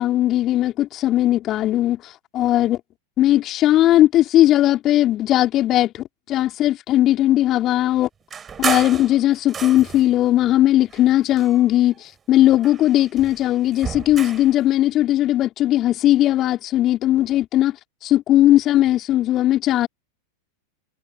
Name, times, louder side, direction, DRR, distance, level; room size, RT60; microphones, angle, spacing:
voice 1, 0.0-2.8 3.2-8.1 8.6-17.8 18.0-19.9, left 13 dB, 35° left, 4.0 m, -18 dB
sound 1, 8.3-10.2 10.9-12.0 12.3-14.6, right 7 dB, 20° right, 5.7 m, -31 dB
figure-of-eight pair, 90°, 0 cm